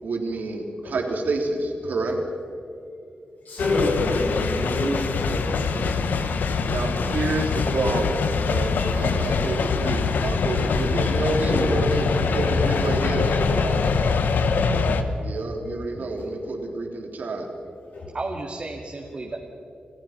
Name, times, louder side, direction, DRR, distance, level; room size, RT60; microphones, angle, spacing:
voice 1, 0.0-2.2 6.7-13.3 15.2-17.5, right 2 dB, 75° right, 2 dB, 3.5 m, -28 dB
voice 2, 3.5-5.9 7.1-7.2 8.6-8.7 11.4-11.7 13.5-13.6 15.4-15.5 15.9-16.0 17.3-17.4 17.9-18.1, left 2 dB, 65° left, -2 dB, 5.7 m, -27 dB
sound 1, 3.6-15.0, left 4 dB, 85° left, 1.3 m, -23 dB
voice 3, 9.1-9.6 13.1-13.8 18.1-19.4, right 3 dB, 35° right, 0 dB, 2.3 m, -35 dB
29.0 x 15.0 x 6.0 m, 2.6 s
wide cardioid pair, 100°, 3 cm